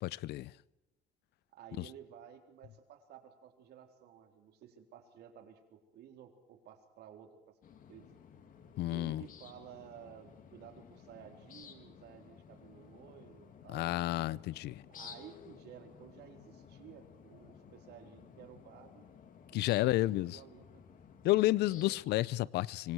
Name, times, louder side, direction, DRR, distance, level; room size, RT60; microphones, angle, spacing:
voice 1, 0.0-0.5 1.8-1.9 8.8-9.2 13.7-14.8 19.5-20.4 21.2-22.9, left 17 dB, 80° left, 0.6 m, -31 dB
voice 2, 1.5-7.6 7.9-8.2 8.9-14.4 15.0-19.1 19.5-20.7 21.6-22.0, right 9 dB, 75° right, 4.1 m, -54 dB
sound 1, 7.6-22.1, left 7 dB, 55° left, 2.9 m, -55 dB
25.5 x 24.5 x 4.7 m
cardioid pair, 110°, 17 cm